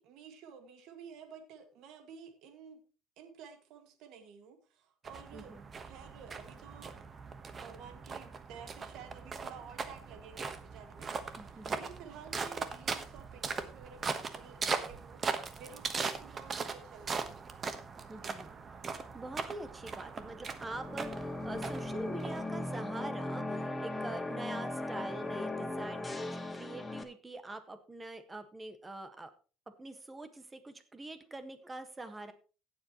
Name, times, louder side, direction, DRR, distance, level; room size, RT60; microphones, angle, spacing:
voice 1, 0.0-2.8 3.2-7.0 7.6-15.2 15.6-17.4 18.1-18.3, right 7 dB, 70° right, 6 dB, 1.9 m, -52 dB
sound 1, 5.0-22.8, right 5 dB, 30° right, 1.2 m, -40 dB
voice 2, 5.3-5.6 11.4-11.8 18.1-18.5 18.9-29.3 29.8-32.3, right 2 dB, 15° right, 9 dB, 1.5 m, -44 dB
sound 2, 20.6-27.0, left 2 dB, 15° left, 1.3 m, -38 dB
16.5 x 7.6 x 3.0 m, 0.35 s
cardioid pair, 120°, 0 cm